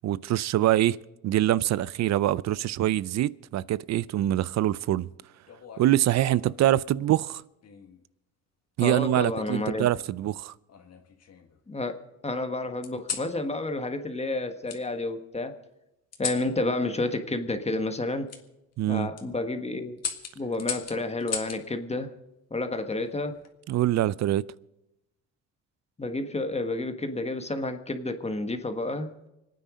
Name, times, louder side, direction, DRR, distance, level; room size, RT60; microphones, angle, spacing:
voice 1, 0.0-1.0 1.2-5.1 5.8-7.4 8.8-10.5 18.8-19.1 23.7-24.5, right 13 dB, 60° right, 0.5 m, -24 dB
sound 1, 5.5-6.6 7.6-8.0 9.3-10.1 10.7-11.6 12.8-13.3 14.7-14.8 16.1-16.5 18.3-18.4 19.0-19.2 20.0-21.6 23.1-23.5, left 7 dB, 55° left, 1.8 m, -37 dB
voice 2, 8.8-9.9 11.7-15.6 16.2-18.3 18.9-20.0 20.3-22.1 22.5-23.4 26.0-29.1, left 2 dB, 20° left, 1.5 m, -30 dB
25.5 x 9.4 x 5.1 m
cardioid pair, 90°, 30 cm